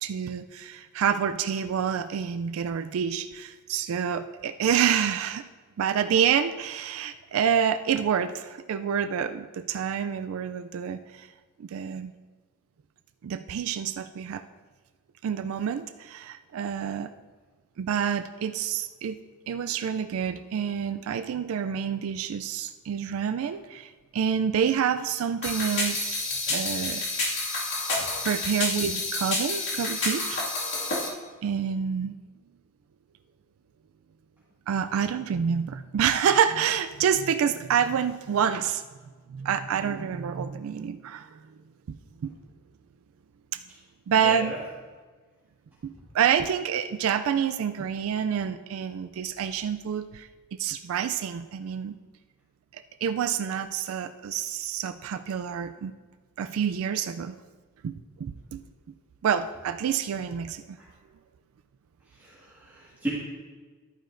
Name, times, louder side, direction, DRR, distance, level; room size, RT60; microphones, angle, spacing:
voice 1, 0.0-5.4 5.8-11.3 11.6-12.1 13.2-14.4 15.2-17.1 17.8-19.2 19.5-27.1 28.2-30.5 31.4-32.2 34.7-38.8 39.3-41.4 41.9-42.0 42.2-42.3 44.1-44.5 45.8-50.3 50.6-51.9 52.7-55.9 56.4-57.4 57.8-58.6 59.2-60.8, right 8 dB, 75° right, 10 dB, 0.3 m, -28 dB
sound 1, 25.4-31.1, left 2 dB, 55° left, 2.0 m, -29 dB
voice 2, 44.2-44.6 62.2-63.1, right 1 dB, 10° right, -10 dB, 1.7 m, -35 dB
11.5 x 9.0 x 2.5 m, 1.4 s
head